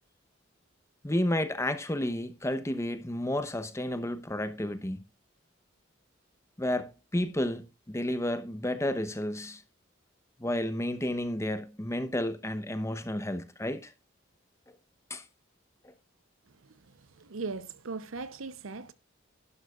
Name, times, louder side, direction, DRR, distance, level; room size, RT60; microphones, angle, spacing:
voice 1, 1.0-5.0 6.6-9.6 10.4-13.9 15.1-15.2 15.8-15.9, left 1 dB, 15° left, 0.9 m, -31 dB
voice 2, 17.2-18.9, right 4 dB, 75° right, 0.8 m, -38 dB
11.5 x 11.0 x 2.4 m
head